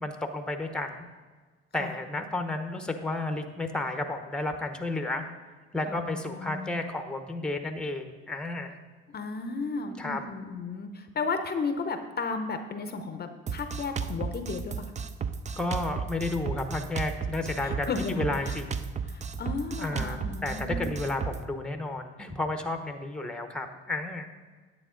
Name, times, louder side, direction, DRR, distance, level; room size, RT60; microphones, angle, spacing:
voice 1, 0.0-0.9 1.7-5.3 5.7-8.8 10.0-10.2 15.6-18.8 19.8-24.3, left 2 dB, 5° left, 6 dB, 0.8 m, -32 dB
voice 2, 5.9-6.8 9.1-14.9 17.6-18.6 19.0-20.8, left 4 dB, 35° left, 7 dB, 0.7 m, -34 dB
Drum kit, 13.5-21.4, right 6 dB, 25° right, 0.5 m, -34 dB
9.9 x 7.7 x 3.8 m, 1.4 s
supercardioid pair, 90°, 29 cm